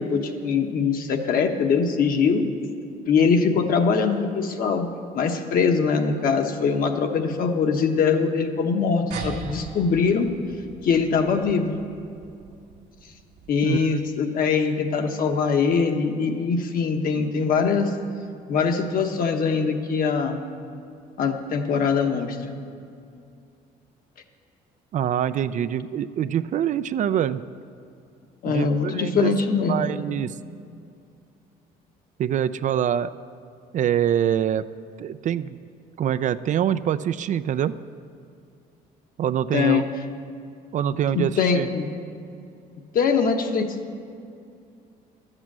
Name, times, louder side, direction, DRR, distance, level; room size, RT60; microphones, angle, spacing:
voice 1, 0.0-2.4 3.1-4.9 5.1-10.3 10.8-11.8 13.5-17.9 18.5-20.4 21.2-22.5 28.4-29.9 39.5-39.8 41.1-41.9 42.9-43.7, left 5 dB, 55° left, 5 dB, 1.2 m, -22 dB
sound 1, 9.1-14.0, right 4 dB, 80° right, 1.6 m, -40 dB
voice 2, 24.9-27.4 28.5-29.3 29.7-30.3 32.2-33.1 33.7-34.7 35.0-35.6 36.0-37.8 39.2-39.8 40.7-41.7, right 9 dB, 50° right, 14 dB, 0.4 m, -24 dB
12.0 x 8.1 x 7.4 m, 2.5 s
cardioid pair, 110°, 17 cm